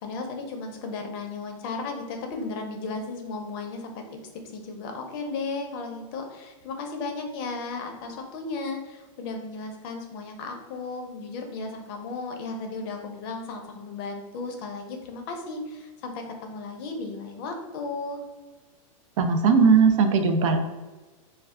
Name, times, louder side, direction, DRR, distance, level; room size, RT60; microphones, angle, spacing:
voice 1, 0.0-4.2 4.5-18.2, left 3 dB, 45° left, 4 dB, 0.5 m, -35 dB
voice 2, 19.2-20.6, right 5 dB, 65° right, 6 dB, 0.5 m, -19 dB
2.2 x 2.1 x 3.5 m, 1.2 s
supercardioid pair, 150°, 18 cm